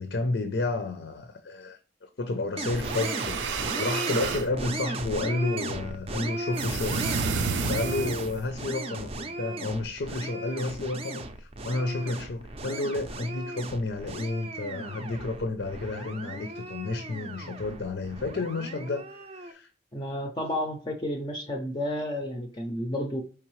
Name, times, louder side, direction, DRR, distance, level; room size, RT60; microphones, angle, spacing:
voice 1, 0.0-7.1 7.6-19.7, left 2 dB, 80° left, 0.5 m, -31 dB
sound 1, 2.6-19.5, right 2 dB, 30° right, 0.4 m, -36 dB
sound 2, 2.7-4.5 6.6-8.4, right 4 dB, 90° right, 0.6 m, -30 dB
voice 2, 19.9-23.2, left 1 dB, 25° left, 0.4 m, -31 dB
4.6 x 3.4 x 3.1 m
head